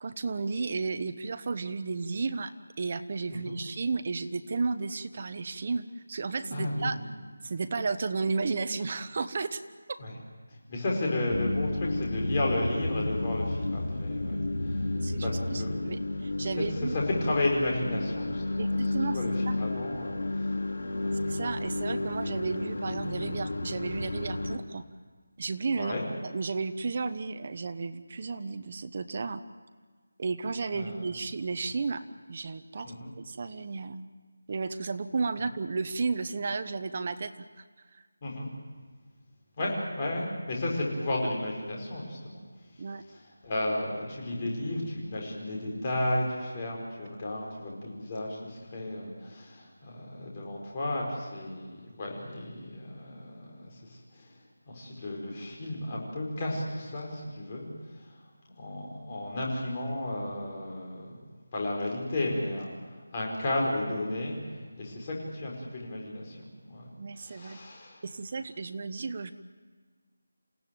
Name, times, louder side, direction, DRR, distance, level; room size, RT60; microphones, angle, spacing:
voice 1, 0.0-7.0 7.4-9.6 9.9-10.0 15.0-17.0 18.6-19.6 21.3-24.8 25.4-25.9 26.3-29.4 30.2-34.0 34.5-37.3 39.6-39.7 42.8-43.0 67.0-67.6 68.0-69.3, right 4 dB, 30° right, 11 dB, 0.9 m, -33 dB
voice 2, 6.5-7.1 10.0-10.1 10.5-14.9 15.2-15.8 16.6-20.5 21.0-21.4 25.8-26.1 30.7-31.1 31.6-31.7 32.8-33.1 38.2-38.5 39.6-42.4 43.1-54.3 54.7-57.7 57.9-58.1 58.6-64.4 64.8-66.4 66.6-66.9 67.2-68.0, left 1 dB, 20° left, -2 dB, 4.7 m, -33 dB
sound 1, 11.3-24.6, left 2 dB, 75° left, 2.9 m, -32 dB
28.0 x 16.5 x 9.1 m, 1.5 s
figure-of-eight pair, 175°, 0 cm